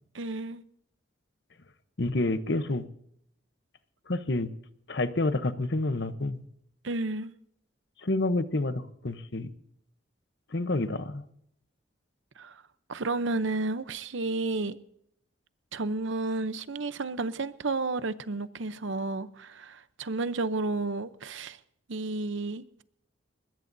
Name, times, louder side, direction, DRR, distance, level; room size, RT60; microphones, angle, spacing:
voice 1, 0.1-0.6 6.8-7.3 12.4-12.6 12.9-14.8 15.7-21.6 21.9-22.8, right 3 dB, 70° right, 0.7 m, -32 dB
voice 2, 2.0-2.9 4.1-4.5 4.9-6.4 8.0-9.5 10.5-11.2, left 2 dB, 55° left, 0.9 m, -28 dB
21.0 x 21.0 x 2.7 m
head